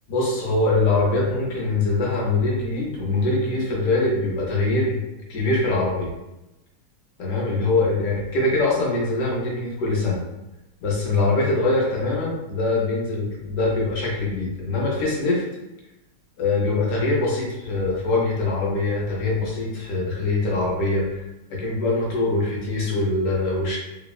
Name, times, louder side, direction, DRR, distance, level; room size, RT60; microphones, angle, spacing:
voice 1, 0.1-5.0 5.3-6.1 7.2-10.2 10.8-15.4 16.4-21.2 21.5-23.8, left 2 dB, 90° left, -3 dB, 1.4 m, -23 dB
3.4 x 2.0 x 2.3 m, 0.96 s
omnidirectional pair, 1.7 m